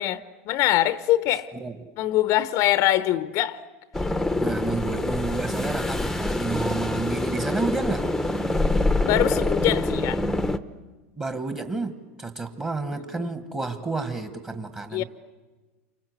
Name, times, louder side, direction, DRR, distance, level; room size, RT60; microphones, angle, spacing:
voice 1, 0.0-1.5 2.0-3.6 9.0-10.2 12.9-13.3 14.9-15.0, left 14 dB, 45° left, 0.8 m, -23 dB
voice 2, 1.5-1.9 4.4-8.1 11.2-15.0, right 3 dB, 15° right, 1.6 m, -30 dB
sound 1, 3.9-10.6, left 2 dB, 5° left, 0.9 m, -25 dB
28.5 x 25.0 x 8.1 m
supercardioid pair, 125°, 7 cm